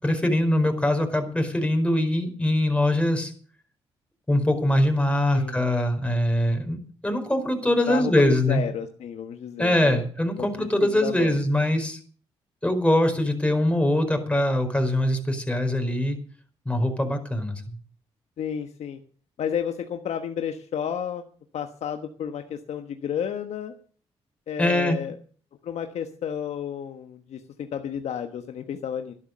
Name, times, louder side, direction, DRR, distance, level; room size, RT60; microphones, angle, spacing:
voice 1, 0.0-3.3 4.3-8.6 9.6-12.0 12.6-16.2 16.6-17.8 24.6-25.0, left 1 dB, 10° left, 5 dB, 4.8 m, -23 dB
voice 2, 7.9-10.0 10.4-11.4 18.4-19.0 19.4-21.2 21.5-23.7 24.5-25.1 25.6-29.1, left 8 dB, 70° left, 6 dB, 1.2 m, -32 dB
12.0 x 11.5 x 6.7 m, 0.44 s
supercardioid pair, 55°, 12 cm